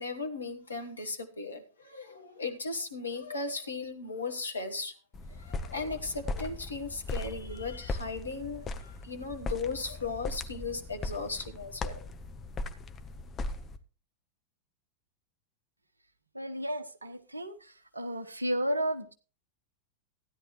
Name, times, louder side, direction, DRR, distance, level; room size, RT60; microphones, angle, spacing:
voice 1, 0.0-4.9 5.3-12.1, left 3 dB, 75° left, 6 dB, 1.5 m, -37 dB
sound 1, 5.1-13.8, left 2 dB, 25° left, 1.0 m, -38 dB
voice 2, 16.3-17.6 17.9-19.1, equal, 80° right, 9 dB, 1.0 m, -32 dB
15.5 x 10.5 x 3.2 m, 0.36 s
figure-of-eight pair, 90°, 0 cm